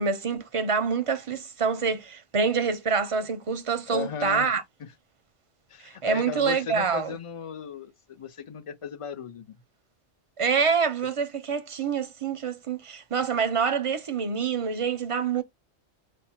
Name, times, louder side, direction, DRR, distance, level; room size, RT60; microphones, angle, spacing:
voice 1, 0.0-4.6 5.8-7.1 10.4-15.4, right 5 dB, 40° right, 0.5 m, -26 dB
voice 2, 3.9-4.5 4.8-4.9 5.7-9.5, left 6 dB, 40° left, 0.5 m, -36 dB
5.0 x 2.0 x 4.3 m
omnidirectional pair, 1.1 m